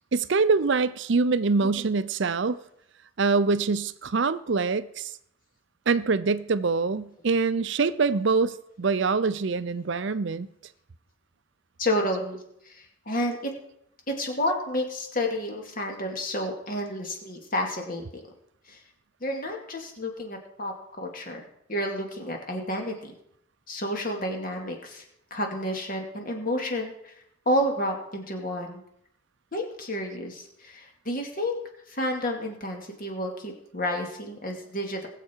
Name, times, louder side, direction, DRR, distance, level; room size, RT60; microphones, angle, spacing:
voice 1, 0.1-2.6 3.2-5.1 5.9-10.5, right 4 dB, 60° right, 0.6 m, -24 dB
voice 2, 11.8-13.5 14.1-18.0 18.7-18.8 19.2-23.1 23.7-25.0 25.3-27.1 27.5-28.8 29.5-31.6 31.9-35.1, left 1 dB, 45° left, 2.4 m, -30 dB
20.0 x 7.7 x 4.6 m
head